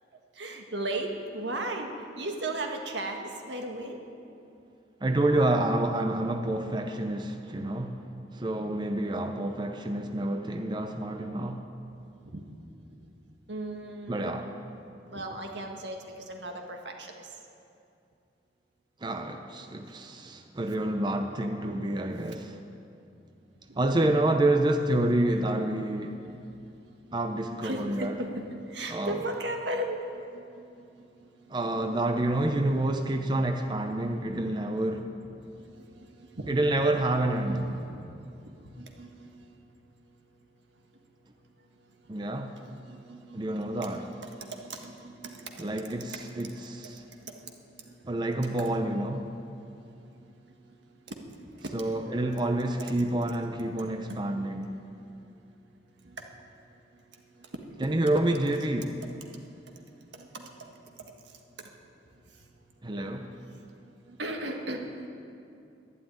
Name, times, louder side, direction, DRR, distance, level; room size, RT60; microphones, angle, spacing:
voice 1, 0.4-1.9 2.2-4.0 12.3-12.4 13.5-14.6 15.1-17.3 23.7-23.8 26.2-26.3 27.6-28.4 28.7-31.5 35.7-36.5 37.5-37.9 38.7-39.3 42.6-45.8 46.1-46.2 46.5-46.6 47.0-47.5 47.8-47.9 50.2-50.7 51.1-51.2 51.5-51.7 54.1-54.2 56.0-56.1 57.4-57.9 59.3-59.8 60.1-60.7 64.1-64.8, right 1 dB, 85° right, 1.6 m, -37 dB
voice 2, 5.0-8.1 8.3-11.6 14.1-14.5 19.0-22.6 23.7-26.2 27.1-28.2 28.9-29.2 31.5-35.2 36.5-37.7 42.1-42.6 43.3-44.1 45.6-47.0 48.0-49.3 51.7-54.8 57.8-59.0 62.8-63.3, right 1 dB, 25° right, 0.6 m, -28 dB
11.5 x 11.0 x 9.4 m
head